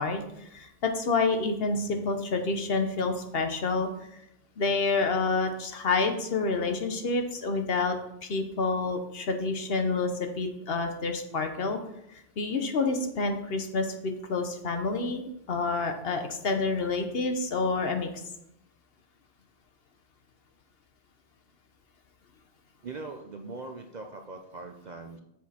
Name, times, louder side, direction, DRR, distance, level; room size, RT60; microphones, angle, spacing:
voice 1, 0.0-3.9 4.6-8.0 8.2-11.8 12.4-18.1, left 3 dB, 60° left, 6 dB, 1.1 m, -28 dB
voice 2, 22.8-25.2, right 3 dB, 50° right, 5 dB, 0.6 m, -41 dB
7.6 x 6.1 x 4.2 m, 0.80 s
omnidirectional pair, 1.2 m